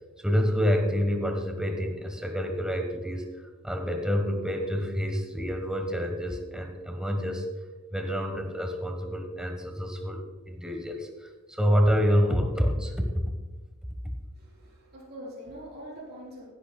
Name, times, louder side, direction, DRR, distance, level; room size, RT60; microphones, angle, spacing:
voice 1, 0.2-7.5 7.9-13.2, equal, 5° right, 4 dB, 1.2 m, -28 dB
voice 2, 14.3-16.5, equal, 50° right, -4 dB, 4.0 m, -43 dB
16.5 x 10.5 x 2.3 m, 1.3 s
head